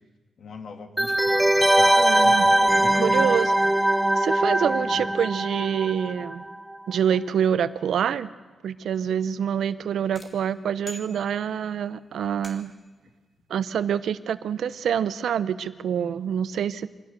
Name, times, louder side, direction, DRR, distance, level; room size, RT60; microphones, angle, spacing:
voice 1, 0.4-3.6 4.6-5.1, left 4 dB, 65° left, 5 dB, 2.0 m, -40 dB
sound 1, 1.0-6.4 6.7-6.8, right 1 dB, 5° right, 0.6 m, -21 dB
voice 2, 1.9-2.5 3.0-3.5 4.2-6.4 6.9-8.3 8.6-12.7 13.5-16.9, right 8 dB, 85° right, 14 dB, 0.7 m, -26 dB
sound 2, 10.1-11.8 12.4-13.0, left 1 dB, 35° left, 2.7 m, -45 dB
24.0 x 16.5 x 6.7 m, 1.3 s
wide cardioid pair, 120°, 0 cm